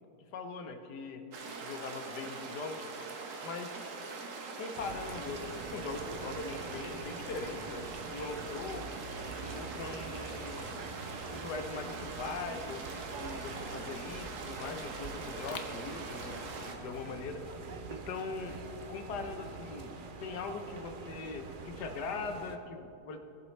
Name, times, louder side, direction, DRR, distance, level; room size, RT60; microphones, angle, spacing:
voice 1, 0.3-1.2 1.6-2.8 3.4-3.8 4.6-8.9 9.4-10.8 11.3-16.4 16.8-17.4 17.9-18.6 18.9-23.2, left 4 dB, 80° left, 6 dB, 1.5 m, -41 dB
sound 1, 1.3-16.8, right 4 dB, 55° right, 1.3 m, -43 dB
sound 2, 4.7-22.6, right 4 dB, 70° right, 0.4 m, -45 dB
sound 3, 13.1-20.3, left 5 dB, 60° left, 1.2 m, -52 dB
18.5 x 7.7 x 3.2 m, 2.7 s
omnidirectional pair, 1.7 m